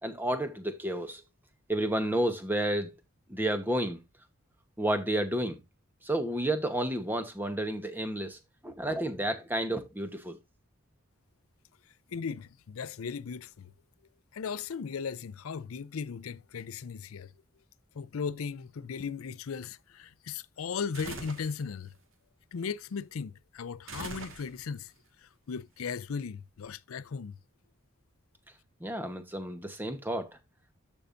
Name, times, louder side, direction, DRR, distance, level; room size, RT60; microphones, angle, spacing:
voice 1, 0.0-1.2 1.7-3.0 3.3-4.0 4.8-5.6 6.0-10.4 28.8-30.3, right 1 dB, 10° right, 1.0 m, -31 dB
voice 2, 12.1-13.7 14.3-17.3 17.9-21.9 22.5-24.9 25.2-27.4, left 6 dB, 85° left, 0.5 m, -37 dB
sound 1, 20.9-21.6 23.9-24.8, right 3 dB, 75° right, 1.7 m, -42 dB
13.5 x 5.4 x 2.5 m
head